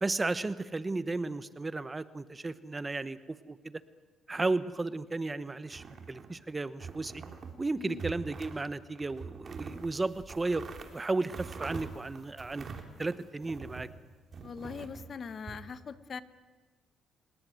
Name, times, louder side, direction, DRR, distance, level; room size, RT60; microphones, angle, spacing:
voice 1, 0.0-3.7 4.3-7.2 7.6-10.6 10.9-12.7 13.0-13.9, right 3 dB, 20° right, 14 dB, 1.1 m, -34 dB
sound 1, 5.6-6.4 6.8-7.6 7.9-8.6 8.9-13.9 14.3-15.6, right 5 dB, 45° right, 3.5 m, -44 dB
voice 2, 14.4-16.2, left 6 dB, 45° left, 13 dB, 1.4 m, -41 dB
30.0 x 18.5 x 9.4 m, 1.3 s
cardioid pair, 90°, 0 cm